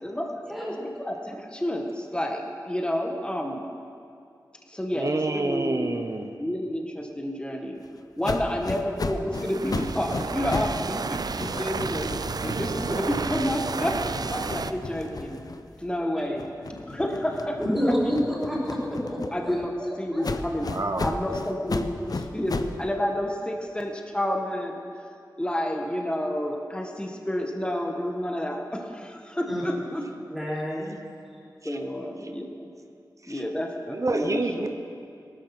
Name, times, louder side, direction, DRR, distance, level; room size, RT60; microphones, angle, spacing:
voice 1, 0.0-3.7 4.7-5.9 6.4-7.8 8.2-12.1 12.4-14.0 14.3-15.4 15.8-16.4 16.9-17.8 18.0-18.1 19.3-19.7 20.0-20.7 21.0-24.8 25.4-30.1 31.7-32.7 33.3-34.7, equal, 15° left, 2 dB, 1.7 m, -30 dB
voice 2, 4.9-6.3 20.7-21.1 31.6-31.8 33.2-33.4 33.9-34.7, right 2 dB, 45° right, 6 dB, 0.8 m, -28 dB
sound 1, 8.2-10.8 11.1-15.9 16.3-19.7 20.2-22.8, left 3 dB, 60° left, 0.8 m, -35 dB
sound 2, 9.3-14.7, right 4 dB, 65° right, 0.5 m, -31 dB
voice 3, 17.6-19.5 20.1-20.2 29.5-29.6 30.3-30.9, equal, ahead, -5 dB, 4.7 m, -28 dB
18.5 x 13.0 x 6.1 m, 2.4 s
wide cardioid pair, 70°, 7 cm